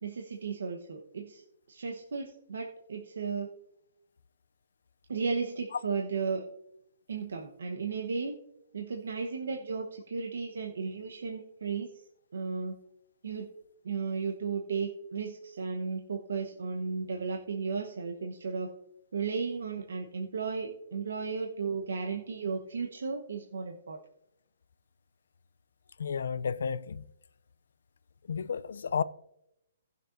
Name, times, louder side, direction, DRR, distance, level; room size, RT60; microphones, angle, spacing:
voice 1, 0.0-3.5 5.1-6.4 7.1-8.4 8.7-12.0 12.3-12.8 13.2-13.5 13.8-18.7 19.1-24.0, right 5 dB, 90° right, 1.0 m, -34 dB
voice 2, 26.0-27.0 28.3-29.0, left 6 dB, 70° left, 0.4 m, -32 dB
18.5 x 6.5 x 2.6 m
hypercardioid pair, 175°, 0 cm